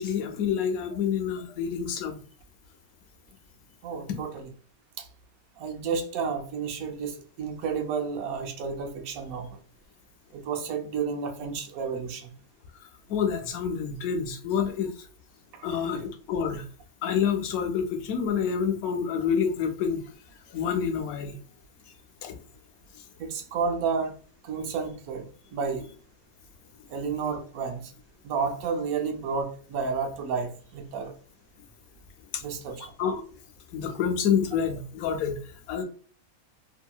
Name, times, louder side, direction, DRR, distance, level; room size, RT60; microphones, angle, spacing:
voice 1, 0.0-2.2 4.1-4.2 13.1-14.9 15.6-16.6 17.0-20.0 20.5-21.3 22.2-22.3 32.3-32.4 32.8-33.2 33.7-35.4 35.7-35.8, left 7 dB, 85° left, 4 dB, 1.1 m, -28 dB
voice 2, 3.8-4.5 5.0-5.1 5.6-9.6 10.3-12.3 15.5-15.7 23.2-24.1 24.4-25.8 26.9-27.9 28.2-31.1 32.4-32.9, right 5 dB, 80° right, 3 dB, 1.1 m, -31 dB
2.8 x 2.7 x 2.2 m, 0.42 s
omnidirectional pair, 1.5 m